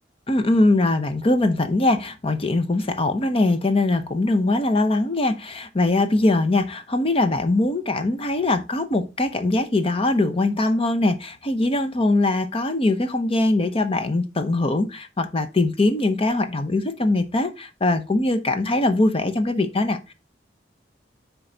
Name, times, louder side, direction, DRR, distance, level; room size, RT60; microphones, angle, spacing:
voice 1, 0.3-20.1, left 2 dB, 30° left, 0.7 m, -22 dB
7.6 x 4.6 x 4.0 m
head